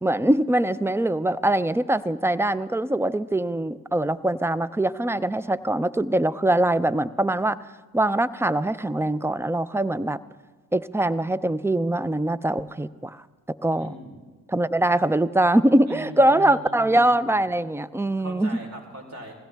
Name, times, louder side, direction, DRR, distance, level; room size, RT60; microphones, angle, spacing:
voice 1, 0.0-7.6 7.9-10.2 10.7-13.2 13.6-13.9 14.5-18.6, right 1 dB, 5° right, 17 dB, 0.4 m, -23 dB
voice 2, 13.7-14.2 15.9-17.4 18.2-19.3, right 1 dB, 45° right, 2 dB, 4.1 m, -40 dB
20.5 x 16.5 x 3.4 m, 1.3 s
supercardioid pair, 65°, 36 cm